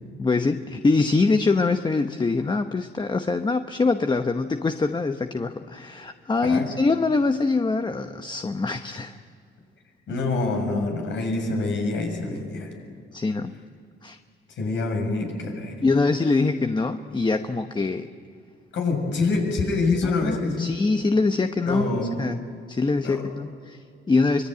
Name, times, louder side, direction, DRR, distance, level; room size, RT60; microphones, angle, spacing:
voice 1, 0.2-9.2 13.1-13.6 14.0-14.2 15.8-18.1 20.0-21.9 22.2-22.4 22.7-24.5, left 3 dB, 20° left, 8 dB, 1.0 m, -24 dB
voice 2, 10.1-12.7 14.5-15.7 18.7-20.7 21.7-22.3 23.0-23.2, left 3 dB, 70° left, 2 dB, 6.9 m, -26 dB
24.5 x 21.5 x 9.3 m, 2.2 s
cardioid pair, 90°, 20 cm